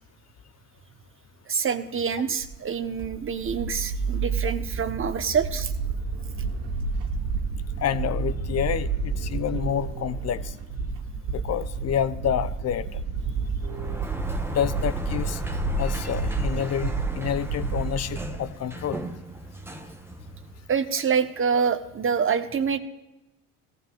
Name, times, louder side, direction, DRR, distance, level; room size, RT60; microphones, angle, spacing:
voice 1, 1.5-5.7 20.7-22.8, right 6 dB, 35° right, 9 dB, 1.2 m, -26 dB
sound 1, 2.4-18.4, right 4 dB, 65° right, 2.1 m, -30 dB
voice 2, 7.8-8.9 9.2-10.5 11.3-12.9 14.5-15.4 15.8-19.0, left 9 dB, 45° left, 14 dB, 0.8 m, -28 dB
Sliding door, 13.6-20.8, right 1 dB, 5° right, 1.1 m, -37 dB
17.5 x 15.0 x 2.5 m, 0.97 s
supercardioid pair, 70°, 37 cm